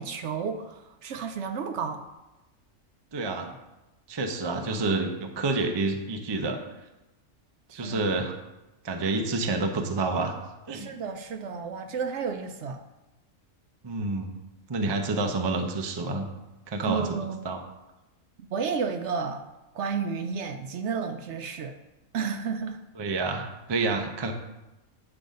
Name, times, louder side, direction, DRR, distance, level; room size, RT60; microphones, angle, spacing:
voice 1, 0.0-2.0 7.7-8.0 10.7-12.8 16.8-17.5 18.5-19.4 19.7-21.8 22.1-22.8, right 6 dB, 65° right, 6 dB, 0.8 m, -32 dB
voice 2, 3.1-3.6 4.1-6.6 7.7-8.3 8.8-10.4 10.7-11.0 13.8-14.3 14.7-16.3 16.7-17.1 17.4-17.6 23.0-24.3, right 3 dB, 30° right, 4 dB, 0.5 m, -28 dB
8.6 x 3.9 x 5.1 m, 1.0 s
omnidirectional pair, 1.4 m